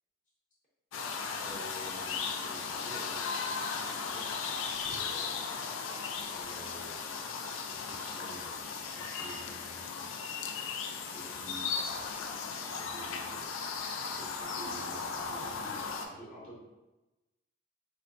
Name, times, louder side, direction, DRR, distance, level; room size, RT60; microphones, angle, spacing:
sound 1, 0.9-16.1, left 5 dB, 80° left, 0.4 m, -37 dB
voice 1, 1.4-6.0 6.3-7.0 7.7-10.0 11.0-11.7 12.6-13.5 14.0-16.6, right 1 dB, 40° left, -7 dB, 0.7 m, -50 dB
4.1 x 2.1 x 2.5 m, 1.0 s
head